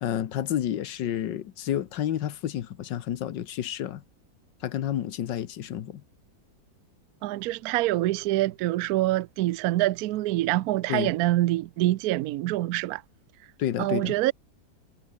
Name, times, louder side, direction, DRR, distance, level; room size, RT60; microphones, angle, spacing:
voice 1, 0.0-4.0 4.6-6.0 10.9-11.1 13.6-14.2, left 11 dB, 70° left, 1.6 m, -30 dB
voice 2, 7.2-13.0 13.8-14.3, right 16 dB, 75° right, 0.8 m, -25 dB
omnidirectional pair, 2.1 m